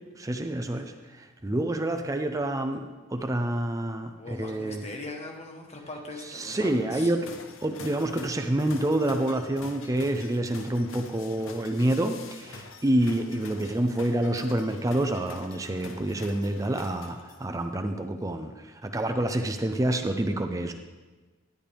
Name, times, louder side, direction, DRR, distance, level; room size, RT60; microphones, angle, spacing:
voice 1, 0.2-2.8 3.1-4.1 4.4-4.8 6.3-7.3 7.6-20.7, right 1 dB, 15° right, 6 dB, 0.5 m, -28 dB
voice 2, 4.2-7.1, left 2 dB, 35° left, 2 dB, 1.3 m, -40 dB
sound 1, 7.2-17.6, left 4 dB, 90° left, 0.7 m, -46 dB
11.5 x 10.0 x 3.4 m, 1.3 s
head